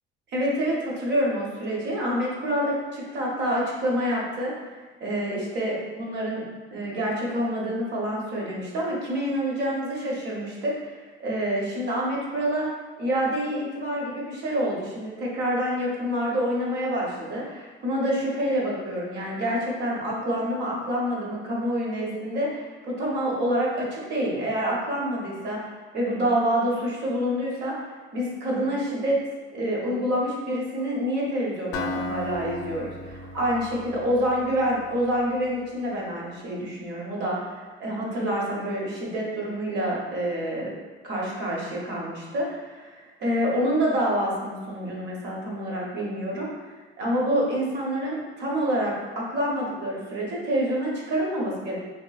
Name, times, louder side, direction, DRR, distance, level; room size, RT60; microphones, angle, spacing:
voice 1, 0.3-6.4 6.7-12.7 13.0-25.6 25.9-27.7 28.1-29.2 29.5-40.7 41.0-51.8, equal, 55° right, -3 dB, 0.8 m, -27 dB
Acoustic guitar, 31.7-35.6, left 2 dB, 85° left, 0.4 m, -36 dB
3.3 x 2.9 x 2.3 m, 1.4 s
cardioid pair, 175°, 21 cm